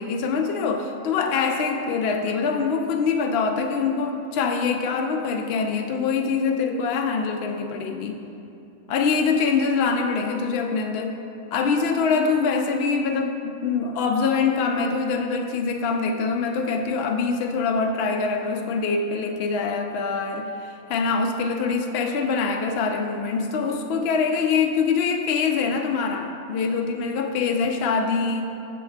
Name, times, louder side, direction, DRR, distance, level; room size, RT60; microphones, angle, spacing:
voice 1, 0.0-8.2 8.9-11.2 11.5-28.4, left 5 dB, 65° left, 4 dB, 0.6 m, -24 dB
8.0 x 6.3 x 3.3 m, 2.7 s
omnidirectional pair, 1.5 m